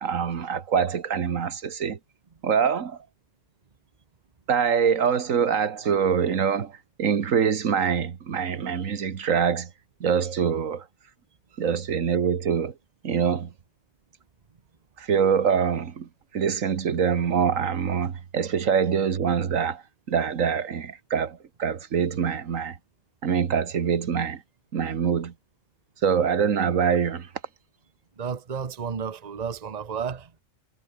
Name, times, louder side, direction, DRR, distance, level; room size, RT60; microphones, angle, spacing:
voice 1, 0.0-2.0 2.4-3.0 4.5-6.7 7.0-9.7 10.0-10.8 11.6-12.7 13.0-13.5 15.0-16.1 16.3-19.8 20.1-22.8 23.2-24.4 24.7-25.3 26.0-27.3, right 7 dB, 80° right, 1.7 m, -24 dB
voice 2, 28.2-30.4, right 6 dB, 35° right, 1.1 m, -32 dB
omnidirectional pair, 1.4 m